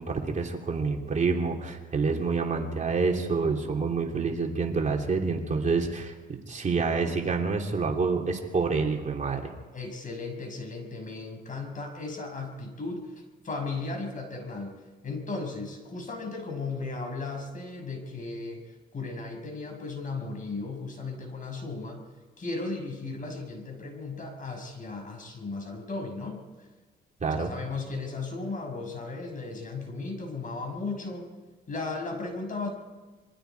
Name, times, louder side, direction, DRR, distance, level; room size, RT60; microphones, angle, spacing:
voice 1, 0.0-9.5 27.2-27.5, right 4 dB, 40° right, 1 dB, 3.0 m, -27 dB
voice 2, 9.7-13.1 13.4-14.8 15.0-18.6 18.9-22.0 22.4-26.4 27.4-31.3 31.7-32.7, left 3 dB, 40° left, 4 dB, 6.1 m, -35 dB
27.0 x 23.0 x 4.7 m, 1.3 s
cardioid pair, 90°, 20 cm